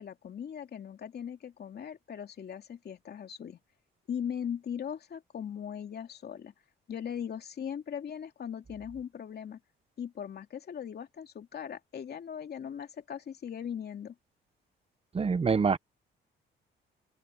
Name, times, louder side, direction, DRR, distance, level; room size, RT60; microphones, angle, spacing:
voice 1, 0.0-3.6 4.1-6.5 6.9-9.6 10.0-14.1, left 8 dB, 55° left, 2.9 m, -39 dB
voice 2, 15.1-15.8, right 5 dB, 30° right, 1.0 m, -25 dB
open air
cardioid pair, 90°, 20 cm